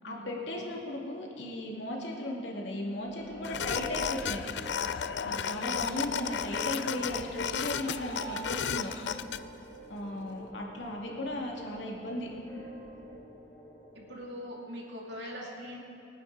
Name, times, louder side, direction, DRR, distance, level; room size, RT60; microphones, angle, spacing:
voice 1, 0.0-4.4 5.2-8.9 9.9-12.3, left 1 dB, 90° left, -1 dB, 2.2 m, -36 dB
sound 1, 2.8-14.1, right 1 dB, 25° left, 2.7 m, -47 dB
sound 2, 3.4-9.4, left 8 dB, 70° left, 0.4 m, -34 dB
voice 2, 5.2-5.5 9.9-10.2 13.9-15.8, equal, 75° right, -2 dB, 2.6 m, -42 dB
21.5 x 9.6 x 3.9 m, 2.6 s
head